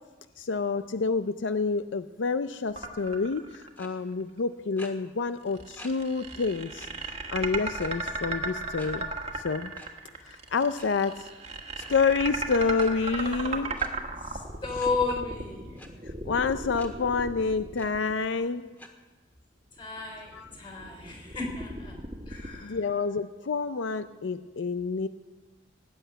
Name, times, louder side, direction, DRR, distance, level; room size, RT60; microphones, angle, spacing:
voice 1, 0.4-6.9 7.3-9.1 9.4-9.7 10.2-11.3 11.9-13.7 16.2-18.7 20.3-20.5 22.6-25.1, left 4 dB, 85° left, 11 dB, 0.5 m, -28 dB
sound 1, 2.8-3.8 4.2-4.3 5.5-18.5 19.8-22.6, right 3 dB, 35° right, 1.5 m, -36 dB
sound 2, 3.8-3.9 4.8-4.9 5.8-5.9 6.3-6.4 6.8-6.9 7.8-8.1 8.8-8.9 9.8-9.9 10.6-10.9 11.8-11.9 12.8-12.9 13.8-13.9 14.8-14.9 15.8-15.9 16.8-16.9 17.3-17.4 17.8-17.9 18.8-18.9, left 1 dB, 10° left, 1.6 m, -46 dB
voice 2, 14.2-15.8 19.8-22.0 22.3-22.8, left 4 dB, 25° left, 1 dB, 4.1 m, -33 dB
18.0 x 8.0 x 9.3 m, 1.2 s
head